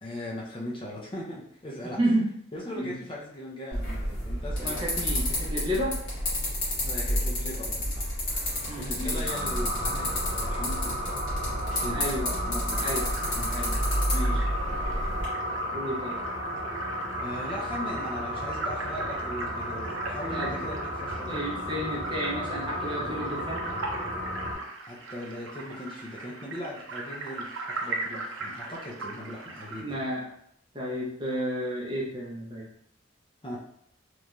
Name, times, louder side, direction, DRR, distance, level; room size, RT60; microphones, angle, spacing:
voice 1, 0.0-2.0 2.5-4.9 6.8-8.1 8.7-11.2 11.8-12.0 12.4-12.8 13.3-13.5 14.3-14.4 17.2-21.4 24.9-30.0 33.4-33.6, left 1 dB, 25° left, -5 dB, 0.5 m, -39 dB
voice 2, 1.8-2.3 2.7-3.0 4.6-6.0 8.7-9.3 11.9-12.4 12.8-13.1 13.5-13.8 14.1-14.4 15.7-16.2 20.3-20.5 21.3-23.7 29.8-30.3 30.7-32.7, equal, 25° right, -5 dB, 0.7 m, -31 dB
sound 1, 3.7-15.3, equal, 80° left, 1.4 m, -30 dB
sound 2, 9.2-24.5, equal, 50° right, 1.3 m, -34 dB
sound 3, 12.7-29.8, right 3 dB, 80° right, 0.5 m, -40 dB
3.0 x 2.6 x 2.2 m, 0.71 s
head